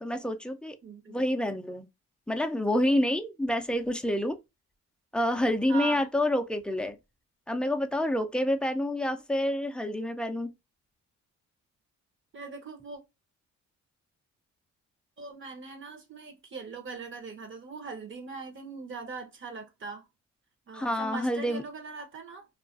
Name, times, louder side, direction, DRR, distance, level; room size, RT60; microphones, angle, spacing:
voice 1, 0.0-0.8 1.1-1.9 2.3-4.4 5.1-7.0 7.5-10.5 20.7-21.6, left 1 dB, 5° left, 0.3 m, -28 dB
voice 2, 0.8-1.2 5.7-6.1 12.3-13.0 15.2-20.0 20.7-22.5, right 5 dB, 40° right, 0.8 m, -40 dB
2.4 x 2.2 x 2.4 m
cardioid pair, 90°, 30 cm